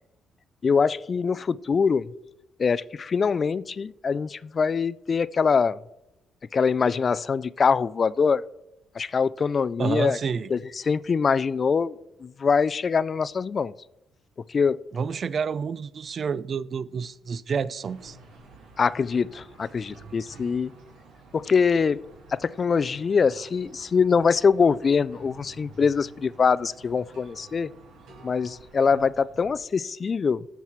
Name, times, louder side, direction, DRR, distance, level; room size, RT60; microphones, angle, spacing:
voice 1, 0.6-2.1 2.6-5.8 6.5-8.4 8.9-10.2 10.5-13.7 14.5-14.9 18.8-20.7 21.3-22.0 22.3-27.7 28.2-30.5, left 5 dB, 40° left, 0.3 m, -23 dB
voice 2, 9.8-10.5 14.9-18.2, right 6 dB, 50° right, 0.4 m, -29 dB
sound 1, 17.8-29.6, right 2 dB, 85° right, 3.0 m, -50 dB
13.0 x 4.7 x 5.7 m
cardioid pair, 90°, 0 cm